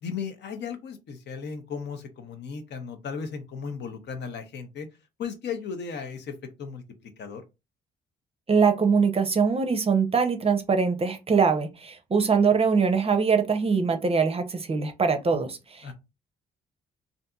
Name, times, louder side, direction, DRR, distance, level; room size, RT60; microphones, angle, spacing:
voice 1, 0.0-4.9 5.2-7.4 15.3-15.4 15.8-15.9, left 6 dB, 60° left, 0.7 m, -36 dB
voice 2, 8.5-15.9, right 5 dB, 30° right, 0.6 m, -23 dB
2.6 x 2.5 x 2.3 m
supercardioid pair, 60°, 20 cm